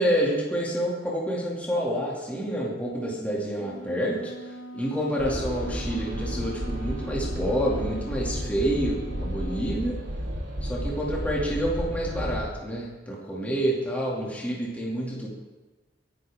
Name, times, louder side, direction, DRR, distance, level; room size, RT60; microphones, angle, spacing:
voice 1, 0.0-10.0 10.6-15.3, equal, 10° left, -5 dB, 2.5 m, -28 dB
Wind instrument woodwind instrument, 3.5-9.8, right 1 dB, 75° left, 1.5 m, -42 dB
sound 1, 5.2-12.4, equal, 80° right, 3.1 m, -32 dB
27.0 x 10.5 x 3.7 m, 1.2 s
head